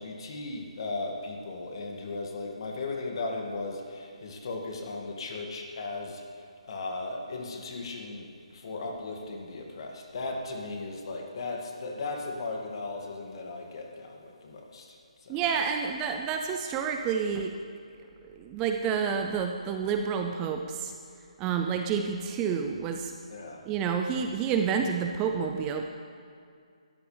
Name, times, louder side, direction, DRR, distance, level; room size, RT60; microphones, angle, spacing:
voice 1, 0.0-6.2 6.6-15.4 23.3-23.6, left 3 dB, 45° left, 1 dB, 2.2 m, -37 dB
voice 2, 15.3-17.5 18.3-20.9 21.4-23.1 23.7-25.8, right 6 dB, 15° right, 4 dB, 0.5 m, -29 dB
21.0 x 14.0 x 3.4 m, 2.3 s
hypercardioid pair, 160°, 4 cm